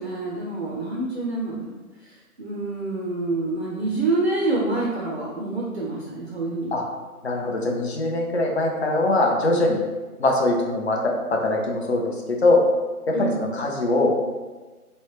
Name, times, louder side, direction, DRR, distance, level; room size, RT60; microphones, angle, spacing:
voice 1, 0.0-1.7 2.0-2.1 2.4-6.8 13.1-13.5, right 2 dB, 45° right, -4 dB, 0.4 m, -27 dB
voice 2, 7.2-9.8 10.2-12.6 13.1-14.2, left 2 dB, 45° left, 0 dB, 0.5 m, -22 dB
3.0 x 2.1 x 2.9 m, 1.3 s
figure-of-eight pair, 145°, 45 cm